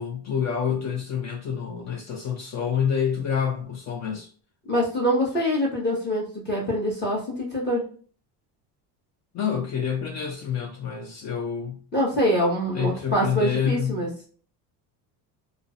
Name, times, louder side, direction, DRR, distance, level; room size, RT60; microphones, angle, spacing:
voice 1, 0.0-4.3 9.3-11.8 12.7-14.0, left 7 dB, 40° left, 0.4 m, -27 dB
voice 2, 4.7-7.8 11.9-14.1, equal, 25° left, 0.9 m, -24 dB
2.4 x 2.0 x 2.5 m
cardioid pair, 110°, 44 cm